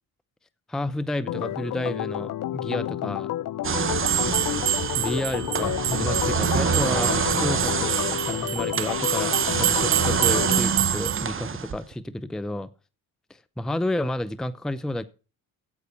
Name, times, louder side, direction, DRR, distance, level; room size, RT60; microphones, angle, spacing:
voice 1, 0.7-3.3 5.0-12.7 13.3-15.1, left 1 dB, ahead, 16 dB, 0.7 m, -31 dB
Organ, 1.3-10.6, left 13 dB, 40° left, 0.5 m, -30 dB
sound 1, 3.6-11.9, right 6 dB, 25° right, 0.8 m, -27 dB
sound 2, 4.0-11.2, right 14 dB, 75° right, 0.9 m, -28 dB
9.6 x 8.2 x 5.4 m, 0.33 s
supercardioid pair, 65°, 47 cm